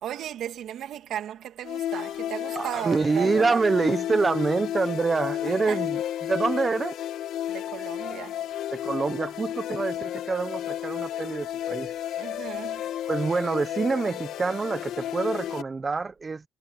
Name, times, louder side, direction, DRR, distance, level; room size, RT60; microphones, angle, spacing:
voice 1, 0.0-3.6 5.4-5.8 7.5-8.4 12.2-12.8, right 10 dB, 75° right, 2.8 m, -36 dB
sound 1, 1.6-15.6, left 11 dB, 85° left, 2.4 m, -32 dB
voice 2, 2.5-7.0 8.7-11.9 13.1-16.4, right 4 dB, 30° right, 1.1 m, -26 dB
cardioid pair, 90°, 0 cm